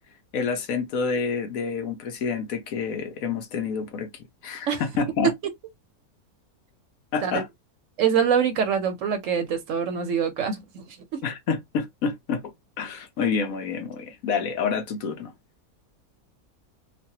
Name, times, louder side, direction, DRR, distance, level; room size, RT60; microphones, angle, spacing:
voice 1, 0.3-5.3 7.1-7.5 11.2-15.3, left 5 dB, 65° left, 1.1 m, -28 dB
voice 2, 8.0-11.2, right 7 dB, 65° right, 0.9 m, -24 dB
3.1 x 2.2 x 2.7 m
omnidirectional pair, 1.6 m